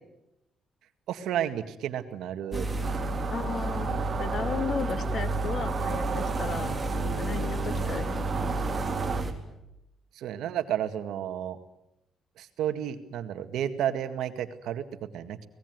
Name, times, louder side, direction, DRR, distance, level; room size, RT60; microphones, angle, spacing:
voice 1, 1.1-2.7 10.1-11.6 12.4-15.4, right 10 dB, 80° right, 8 dB, 1.9 m, -32 dB
sound 1, 2.5-9.3, right 2 dB, 20° right, 3.9 m, -31 dB
sound 2, 2.8-9.2, right 7 dB, 50° right, 1.8 m, -35 dB
voice 2, 3.3-6.7 7.0-8.6, left 5 dB, 50° left, 9 dB, 2.5 m, -35 dB
24.5 x 19.5 x 9.5 m, 0.89 s
cardioid pair, 90°, 0 cm